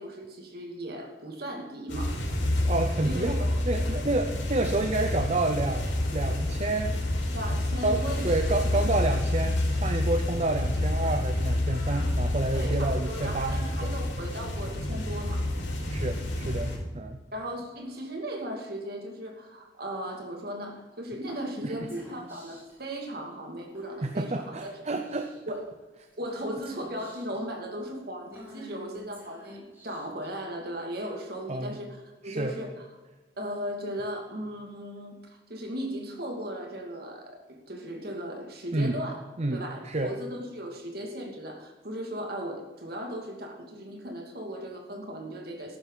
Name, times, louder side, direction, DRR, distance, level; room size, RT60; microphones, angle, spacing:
voice 1, 0.0-2.2 3.0-3.6 7.3-8.4 12.5-15.5 17.3-24.8 25.5-25.7 26.2-32.0 32.2-32.8 33.4-39.2 39.5-45.8, equal, 55° right, 2 dB, 2.6 m, -37 dB
sound 1, 1.9-16.8, left 1 dB, 80° left, 5.2 m, -28 dB
voice 2, 2.7-3.4 3.7-7.0 7.8-13.9 15.9-17.2 21.6-21.9 24.0-25.3 31.5-31.8 32.2-32.6 38.7-39.0 39.4-40.1, right 2 dB, 35° right, 6 dB, 0.7 m, -29 dB
Female speech woman speaking / Whispering, 21.3-22.7 23.7-24.2 24.6-24.7 25.0-25.6 26.3-27.4 28.3-30.3, equal, 15° right, 4.3 m, -48 dB
14.0 x 11.5 x 4.1 m, 1.2 s
head